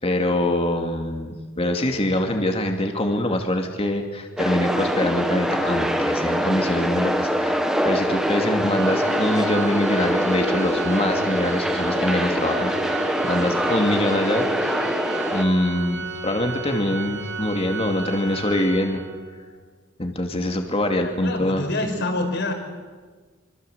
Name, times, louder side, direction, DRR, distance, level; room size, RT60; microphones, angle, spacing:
voice 1, 0.0-14.9 15.3-19.0 20.0-21.7, left 1 dB, 30° left, 4 dB, 2.6 m, -24 dB
sound 1, 4.4-15.4, equal, 5° right, 1.9 m, -24 dB
Organ, 8.7-19.4, right 3 dB, 60° right, 2.4 m, -33 dB
voice 2, 21.0-22.5, left 2 dB, 60° left, 3 dB, 5.4 m, -26 dB
25.5 x 25.5 x 8.2 m, 1.4 s
head